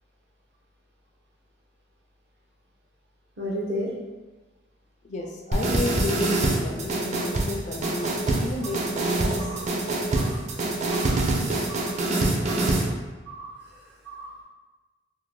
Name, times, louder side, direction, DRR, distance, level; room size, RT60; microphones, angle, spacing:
voice 1, 3.4-3.9 7.8-7.9 9.4-9.6 10.1-10.4 10.9-11.2 11.7-11.9 12.5-12.7 13.3-13.5 14.0-14.3, equal, 70° right, -4 dB, 0.8 m, -34 dB
voice 2, 5.0-9.6, left 2 dB, 40° left, 0 dB, 0.4 m, -33 dB
sound 1, 5.5-12.9, right 2 dB, 40° right, 0.3 m, -25 dB
2.7 x 2.1 x 3.1 m, 1.2 s
head